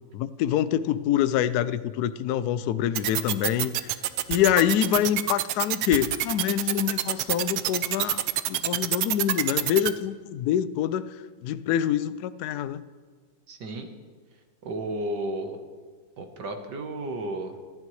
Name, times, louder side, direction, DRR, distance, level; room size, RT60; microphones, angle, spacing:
voice 1, 0.1-3.9 4.3-11.1 11.4-12.8, left 11 dB, 80° left, 13 dB, 0.8 m, -26 dB
sound 1, 2.9-9.9, right 13 dB, 90° right, 1.5 m, -26 dB
voice 2, 13.5-13.9 14.6-15.6 16.2-17.6, right 1 dB, 60° right, 5 dB, 1.7 m, -33 dB
25.0 x 11.5 x 3.2 m, 1.5 s
omnidirectional pair, 2.2 m